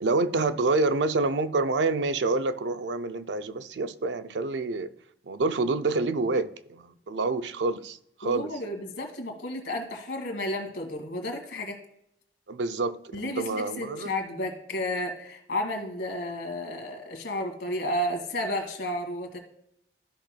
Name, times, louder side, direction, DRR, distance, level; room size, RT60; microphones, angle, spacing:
voice 1, 0.0-4.9 5.2-8.5 12.5-14.1, right 3 dB, 80° right, 0.5 m, -27 dB
voice 2, 8.2-11.8 13.1-19.4, left 1 dB, 90° left, 1.8 m, -32 dB
13.5 x 5.9 x 2.2 m
head